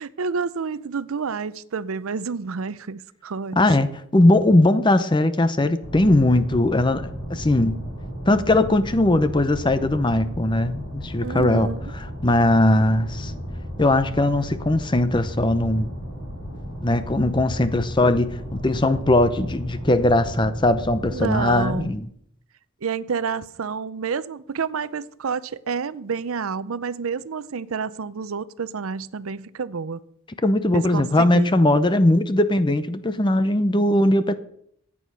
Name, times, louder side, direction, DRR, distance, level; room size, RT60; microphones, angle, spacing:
voice 1, 0.0-3.6 11.2-11.8 21.1-21.9 22.8-30.0 30.7-31.5, right 5 dB, 85° right, 0.6 m, -29 dB
voice 2, 3.6-3.9 4.1-7.8 8.3-11.7 12.2-13.3 13.8-15.9 16.8-22.1 30.4-34.3, left 1 dB, 20° left, 0.7 m, -19 dB
sound 1, 5.8-21.8, equal, 75° left, 6.3 m, -34 dB
14.0 x 8.6 x 5.6 m
head